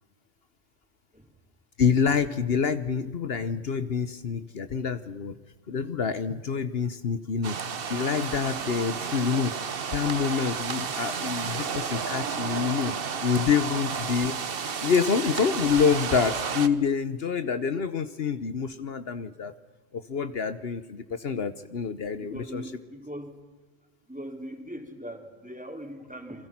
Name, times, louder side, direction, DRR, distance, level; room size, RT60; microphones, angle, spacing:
voice 1, 1.8-5.3 5.7-7.6 7.9-9.5 9.9-12.9 13.2-14.3 14.8-19.5 19.9-22.6, left 6 dB, 65° left, 11 dB, 1.2 m, -27 dB
sound 1, 7.4-16.7, right 6 dB, 60° right, 1.2 m, -32 dB
voice 2, 22.2-23.4 24.1-26.5, equal, 5° right, 3 dB, 3.3 m, -40 dB
30.0 x 23.0 x 6.0 m, 1.3 s
omnidirectional pair, 1.1 m